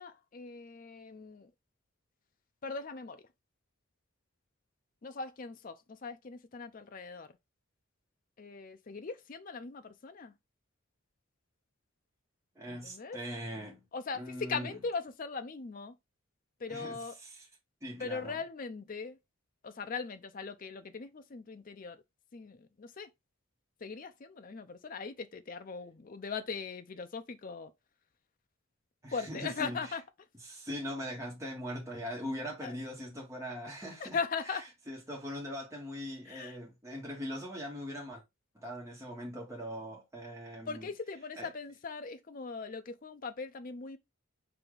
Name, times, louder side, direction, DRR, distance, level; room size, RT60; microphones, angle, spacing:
voice 1, 0.0-1.5 2.6-3.2 5.0-7.4 8.4-10.3 12.7-13.2 13.9-16.0 16.6-17.1 18.0-19.2 19.6-22.0 22.3-23.1 23.8-27.7 29.1-30.0 32.6-32.7 34.0-34.6 36.3-36.6 40.7-44.0, left 5 dB, 40° left, 0.4 m, -40 dB
voice 2, 12.5-13.8 14.1-14.8 16.7-17.5 17.8-18.4 29.0-29.8 30.4-34.2 34.5-34.6 34.9-38.2 38.5-40.9 41.4-41.5, equal, 15° right, 1.2 m, -41 dB
4.8 x 2.6 x 3.8 m
head